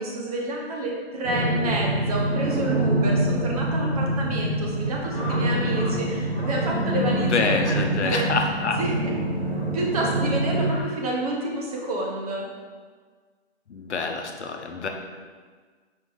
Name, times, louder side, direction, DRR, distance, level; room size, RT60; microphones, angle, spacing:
voice 1, 0.0-8.3 8.8-9.1 9.7-12.5, right 1 dB, 35° right, -1 dB, 1.0 m, -29 dB
sound 1, 1.2-10.8, right 1 dB, 75° right, 1.4 m, -25 dB
sound 2, 5.1-6.0 6.3-6.6 7.0-7.3 7.7-7.9 8.5-8.8 9.5-9.7 10.6-10.9, left 2 dB, 15° left, 1.0 m, -40 dB
voice 2, 7.3-8.8 13.7-14.9, left 4 dB, 85° left, 3 dB, 0.9 m, -26 dB
4.8 x 4.1 x 4.9 m, 1.5 s
hypercardioid pair, 155°, 33 cm